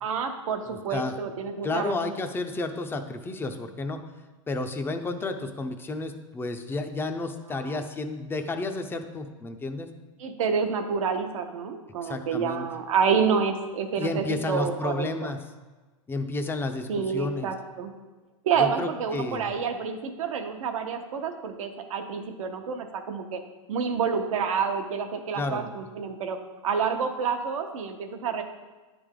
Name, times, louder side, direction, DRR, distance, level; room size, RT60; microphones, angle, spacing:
voice 1, 0.0-2.1 7.5-7.8 10.2-15.3 16.9-17.9 18.4-23.4 23.7-26.4 26.6-28.4, right 6 dB, 75° right, 5 dB, 0.9 m, -28 dB
voice 2, 1.6-4.0 4.5-9.9 12.0-12.7 14.0-15.4 16.1-17.5 18.6-19.5 25.4-25.7, left 2 dB, 15° left, 6 dB, 0.5 m, -31 dB
9.9 x 3.4 x 3.7 m, 1.2 s
hypercardioid pair, 115°, 17 cm